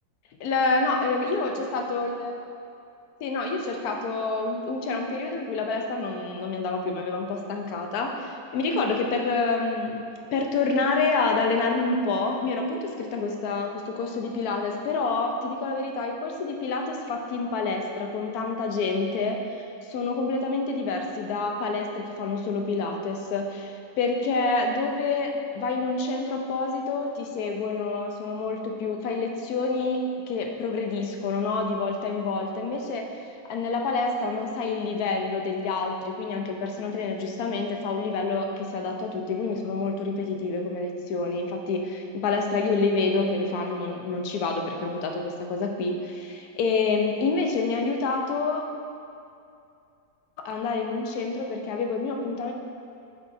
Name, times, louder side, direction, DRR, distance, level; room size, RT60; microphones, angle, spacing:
voice 1, 0.4-2.3 3.2-10.0 10.3-33.1 33.5-48.6 50.4-52.5, left 3 dB, 70° left, 3 dB, 1.2 m, -28 dB
8.1 x 6.2 x 2.7 m, 2.5 s
omnidirectional pair, 1.7 m